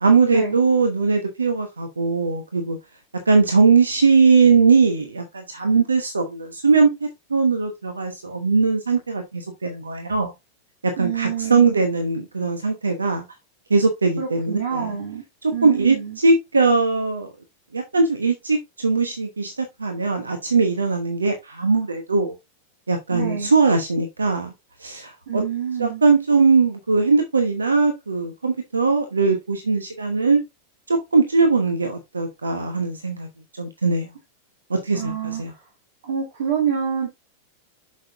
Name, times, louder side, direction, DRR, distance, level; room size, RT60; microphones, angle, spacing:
voice 1, 0.0-2.8 3.3-10.3 10.8-13.2 13.7-14.9 15.4-17.3 17.7-22.3 22.9-24.5 24.8-25.4 25.8-30.4 30.9-33.3 33.6-34.1 34.7-35.5, right 4 dB, 75° right, 1.1 m, -20 dB
voice 2, 11.0-11.8 14.2-15.2 15.5-16.2 23.1-23.5 25.3-26.0 34.9-35.6 36.1-37.1, right 8 dB, 60° right, 2.2 m, -27 dB
7.6 x 6.4 x 2.6 m
figure-of-eight pair, 90°, 0 cm